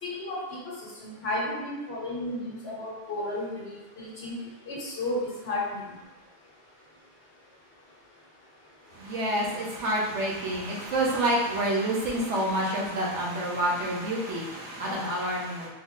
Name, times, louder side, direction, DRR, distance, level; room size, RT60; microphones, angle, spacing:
voice 1, 0.0-4.3 4.7-5.8, left 1 dB, 65° left, -5 dB, 1.3 m, -33 dB
voice 2, 9.0-15.7, right 1 dB, 75° right, -3 dB, 1.1 m, -28 dB
4.0 x 2.1 x 3.5 m, 1.1 s
omnidirectional pair, 1.2 m